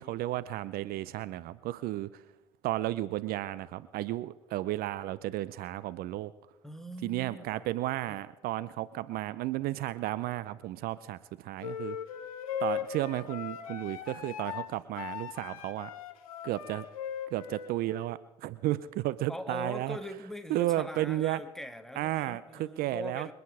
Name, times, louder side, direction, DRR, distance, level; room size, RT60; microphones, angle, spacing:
voice 1, 0.0-2.2 2.6-6.3 7.0-12.0 12.6-15.9 16.4-16.8 17.3-20.0 20.5-21.4 22.0-23.3, right 15 dB, 60° right, 17 dB, 0.6 m, -33 dB
voice 2, 6.6-7.6 8.1-8.2 19.3-23.3, left 1 dB, ahead, 8 dB, 1.8 m, -42 dB
sound 1, 11.6-18.1, left 9 dB, 80° left, 1.6 m, -39 dB
26.0 x 9.5 x 4.9 m, 1.0 s
hypercardioid pair, 60°, 18 cm